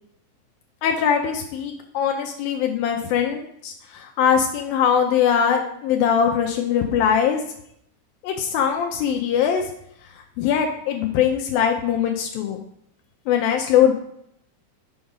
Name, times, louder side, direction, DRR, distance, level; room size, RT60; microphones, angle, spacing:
voice 1, 0.8-7.4 8.2-9.7 10.4-12.6 13.3-13.9, left 8 dB, 80° left, 3 dB, 2.5 m, -21 dB
7.0 x 5.0 x 5.4 m, 0.71 s
omnidirectional pair, 4.2 m